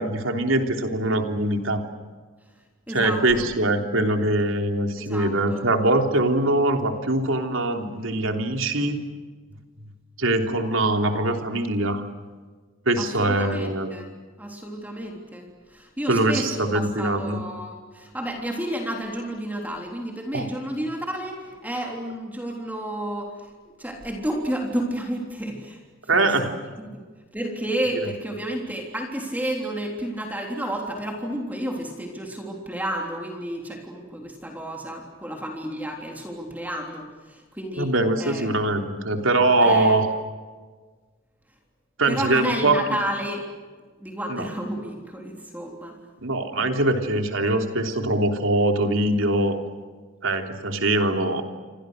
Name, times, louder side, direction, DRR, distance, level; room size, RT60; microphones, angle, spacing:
voice 1, 0.0-1.8 2.9-9.0 10.2-12.0 12.8-13.9 16.1-17.4 20.3-20.5 26.1-26.5 37.8-40.1 42.0-42.8 44.3-44.5 46.2-49.6 50.2-51.4, right 2 dB, 75° right, 4 dB, 3.4 m, -22 dB
voice 2, 2.9-3.5 5.0-5.7 13.0-14.1 14.4-23.3 23.8-25.8 26.1-27.0 27.3-37.9 38.2-38.5 39.6-40.0 42.1-43.4 44.0-46.0, right 1 dB, 10° right, 1 dB, 3.5 m, -31 dB
29.5 x 25.5 x 6.6 m, 1.4 s
head